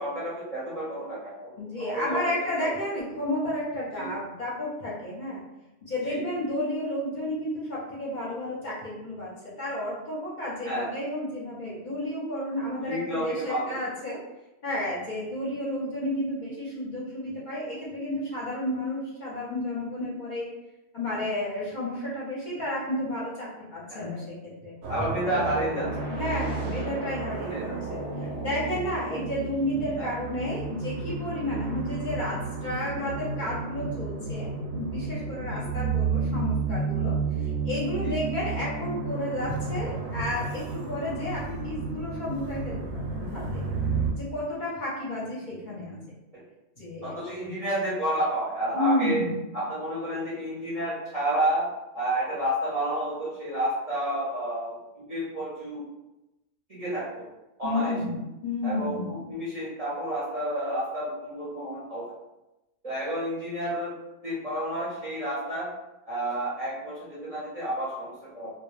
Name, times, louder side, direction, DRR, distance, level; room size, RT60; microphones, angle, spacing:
voice 1, 0.0-2.7 3.9-4.1 6.1-6.2 10.6-10.9 12.8-13.8 23.9-24.1 24.9-25.9 27.5-27.8 28.2-28.3 30.0-30.1 35.5-35.7 38.0-38.1 47.0-49.2 49.5-51.7 51.9-55.8 56.7-57.3 57.6-58.0 58.6-62.0 62.8-63.9 64.2-65.7 66.1-68.5, right 1 dB, 40° right, -9 dB, 0.6 m, -30 dB
voice 2, 1.6-5.4 5.8-14.2 14.6-20.5 20.9-24.7 25.3-25.8 26.1-28.0 28.4-43.6 44.1-46.0 46.8-47.2 48.7-49.4 57.6-59.2, left 1 dB, 50° left, -7 dB, 0.6 m, -32 dB
sound 1, 24.8-44.1, right 4 dB, 70° right, 0.8 m, -32 dB
2.1 x 2.1 x 3.0 m, 0.96 s
omnidirectional pair, 1.2 m